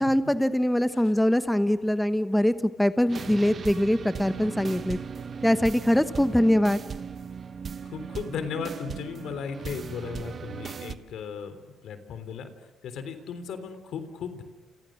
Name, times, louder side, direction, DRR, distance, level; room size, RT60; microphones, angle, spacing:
voice 1, 0.0-5.0 5.4-6.8, left 1 dB, 5° left, 11 dB, 1.0 m, -23 dB
sound 1, 3.1-11.0, right 6 dB, 45° right, 1.2 m, -38 dB
voice 2, 7.8-11.6 11.8-12.5 12.8-14.4, left 6 dB, 75° left, 10 dB, 3.4 m, -36 dB
29.5 x 29.0 x 6.4 m, 1.1 s
cardioid pair, 90°, 0 cm